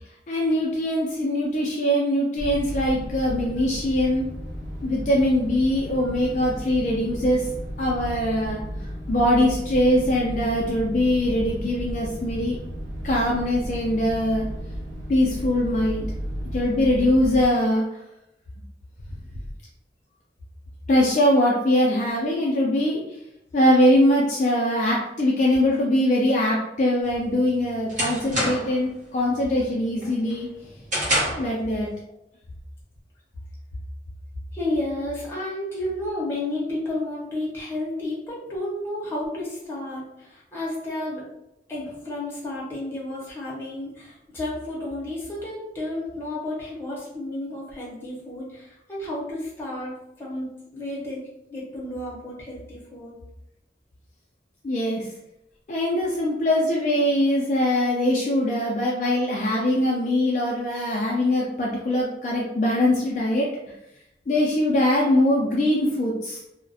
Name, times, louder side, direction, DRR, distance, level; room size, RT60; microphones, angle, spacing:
voice 1, 0.3-4.3 4.8-7.5 7.8-12.6 13.0-14.4 15.1-16.1 16.5-18.0 20.9-23.2 23.5-30.5 31.3-31.9 54.6-55.1 55.7-63.5 64.3-66.4, left 1 dB, 45° left, -3 dB, 0.3 m, -22 dB
sound 1, 2.4-17.5, equal, 90° right, 0.5 m, -34 dB
sound 2, 27.1-28.9 29.3-29.6 30.0-31.6, equal, 45° right, 0.9 m, -27 dB
voice 2, 34.5-41.2 41.7-51.2 51.5-53.2, left 1 dB, 15° left, -6 dB, 0.7 m, -32 dB
2.3 x 2.0 x 2.6 m, 0.85 s
head